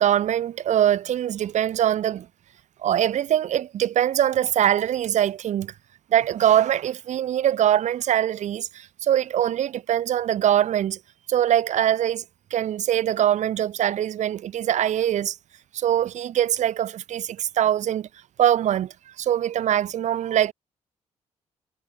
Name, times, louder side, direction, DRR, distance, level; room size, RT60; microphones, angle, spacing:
voice 1, 0.0-2.3 2.8-5.7 6.1-11.0 11.3-12.2 12.5-15.4 15.7-18.1 18.4-20.5, right 11 dB, 75° right, 3.0 m, -23 dB
cardioid pair, 80°, 12 cm